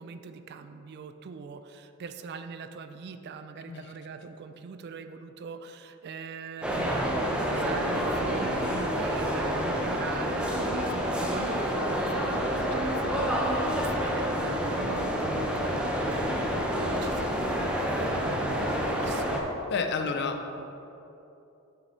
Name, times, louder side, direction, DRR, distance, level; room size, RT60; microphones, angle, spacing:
voice 1, 0.0-12.1 12.4-19.5 19.8-20.7, right 5 dB, 45° right, 9 dB, 0.3 m, -42 dB
sound 1, 6.6-19.4, equal, 5° right, 0.6 m, -28 dB
voice 2, 15.2-15.6 19.7-20.4, left 5 dB, 50° left, 6 dB, 0.5 m, -31 dB
6.4 x 5.8 x 4.2 m, 2.9 s
head